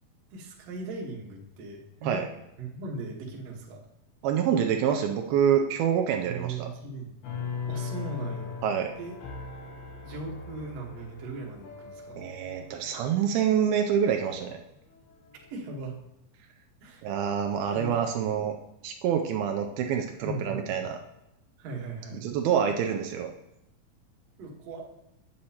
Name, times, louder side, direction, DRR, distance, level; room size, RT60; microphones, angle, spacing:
voice 1, 0.3-2.2 2.6-3.8 6.2-7.2 7.7-8.6 9.0-9.2 10.0-12.2 15.5-16.0 16.8-17.0 17.7-18.4 20.2-20.8 21.6-22.2 24.4-24.9, right 3 dB, 60° right, -1 dB, 1.9 m, -38 dB
voice 2, 4.2-6.7 8.6-8.9 12.2-14.6 17.0-18.6 18.8-21.0 22.2-23.3, right 8 dB, 85° right, 4 dB, 2.3 m, -26 dB
sound 1, 7.2-14.5 14.9-15.5, left 5 dB, 80° left, 3.4 m, -40 dB
8.6 x 7.8 x 2.8 m, 0.88 s
omnidirectional pair, 4.4 m